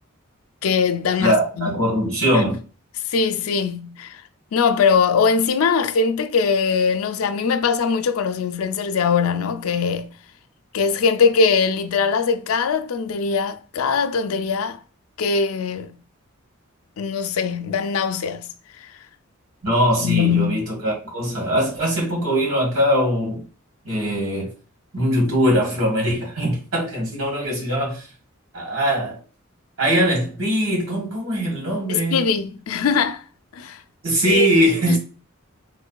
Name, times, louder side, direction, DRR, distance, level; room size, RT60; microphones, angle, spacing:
voice 1, 0.6-1.8 2.3-2.4 3.1-4.2 4.5-10.1 10.7-14.8 15.2-15.9 17.0-18.5 18.8-18.9 20.0-20.6 31.9-33.2 33.5-33.8 34.3-34.5 34.9-35.0, left 5 dB, 90° left, 0.4 m, -21 dB
voice 2, 1.2-2.6 19.6-23.4 23.8-24.5 24.9-28.1 28.5-29.2 29.8-32.2 34.0-35.0, equal, 75° right, 1.6 m, -21 dB
3.8 x 3.1 x 2.2 m
head